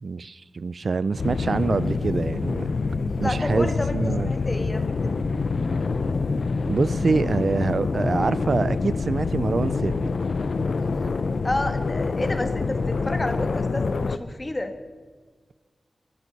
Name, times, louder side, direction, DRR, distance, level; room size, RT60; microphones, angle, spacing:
voice 1, 0.0-2.7 3.2-4.3 6.7-10.1, right 4 dB, 60° right, 16 dB, 0.4 m, -25 dB
sound 1, 1.2-14.2, left 4 dB, 70° left, 0.6 m, -26 dB
voice 2, 3.2-4.0 4.2-5.1 11.4-14.7, left 1 dB, 25° left, 7 dB, 1.4 m, -30 dB
22.0 x 12.0 x 4.1 m, 1.5 s
wide cardioid pair, 100°, 0 cm